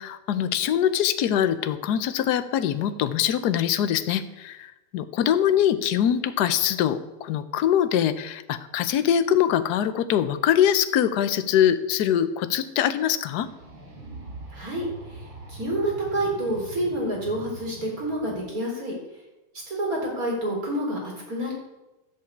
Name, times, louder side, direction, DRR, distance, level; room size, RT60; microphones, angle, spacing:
voice 1, 0.0-13.5, left 10 dB, 65° left, 11 dB, 1.2 m, -23 dB
sound 1, 13.4-18.4, right 2 dB, 70° right, 3.9 m, -43 dB
voice 2, 14.5-18.9 19.7-21.5, right 1 dB, 40° right, -1 dB, 4.4 m, -28 dB
11.0 x 7.6 x 8.4 m, 1.0 s
omnidirectional pair, 2.3 m